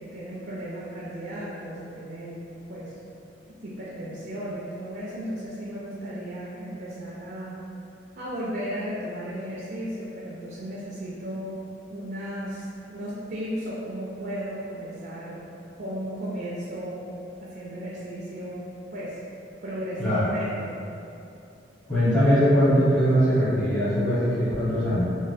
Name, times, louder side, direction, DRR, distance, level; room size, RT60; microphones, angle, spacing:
voice 1, 0.0-2.4 2.7-2.9 3.5-7.6 8.2-11.6 11.9-15.4 15.8-17.1 17.4-19.2 19.6-20.8, equal, 50° right, -7 dB, 0.4 m, -35 dB
voice 2, 21.9-25.0, equal, 25° left, -14 dB, 0.9 m, -21 dB
3.1 x 2.5 x 2.6 m, 2.7 s
head